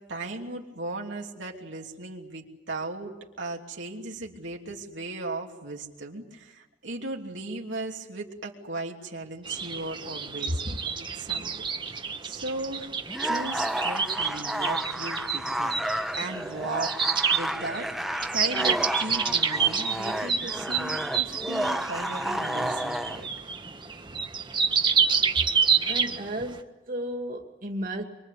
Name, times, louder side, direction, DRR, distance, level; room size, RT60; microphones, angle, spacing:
voice 1, 0.0-10.6 10.9-12.9 13.2-15.8 16.1-17.0 17.3-23.3, right 2 dB, 90° right, 0 dB, 3.0 m, -37 dB
sound 1, 9.5-26.6, right 6 dB, 25° right, 1.2 m, -29 dB
voice 2, 10.5-10.8 25.9-28.0, equal, 45° right, 2 dB, 2.5 m, -33 dB
sound 2, 13.1-23.2, right 1 dB, ahead, 0.9 m, -31 dB
25.0 x 24.0 x 8.4 m, 1.2 s
head